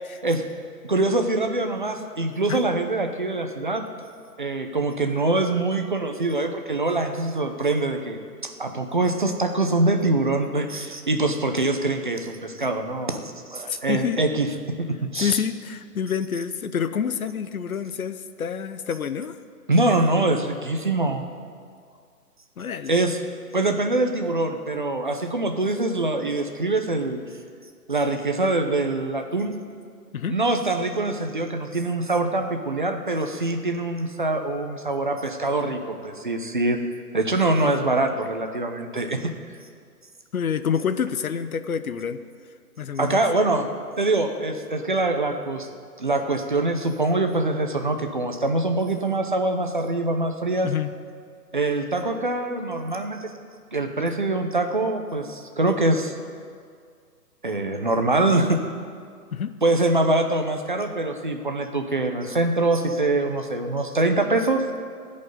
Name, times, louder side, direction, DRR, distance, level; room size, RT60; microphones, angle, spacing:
voice 1, 0.8-3.9 4.4-14.5 14.9-15.4 19.7-21.3 22.9-23.2 23.5-27.2 27.9-29.5 30.3-36.8 37.1-39.3 43.0-43.7 44.0-45.7 46.0-50.7 51.5-53.3 53.7-56.1 57.4-58.6 59.6-64.6, right 2 dB, 30° right, 5 dB, 0.7 m, -24 dB
voice 2, 13.7-14.2 15.2-19.3 22.6-23.0 30.1-30.4 40.3-42.2 42.8-43.2 50.6-50.9 59.3-59.5, left 7 dB, 60° left, 11 dB, 0.8 m, -27 dB
15.5 x 5.4 x 9.5 m, 2.1 s
hypercardioid pair, 170°, 48 cm